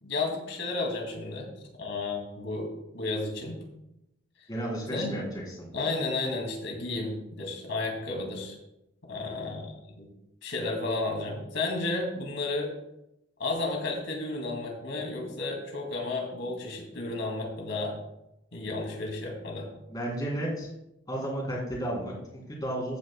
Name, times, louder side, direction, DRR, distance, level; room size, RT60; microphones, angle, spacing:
voice 1, 0.0-1.5 1.8-3.6 4.9-5.1 5.7-8.5 9.1-10.1 10.4-12.7 13.4-17.9 18.5-19.7, left 3 dB, 75° left, 0 dB, 2.5 m, -32 dB
voice 2, 4.5-5.7 19.9-20.7 21.1-23.0, right 1 dB, 20° left, -2 dB, 3.2 m, -33 dB
14.5 x 9.2 x 2.3 m, 0.85 s
head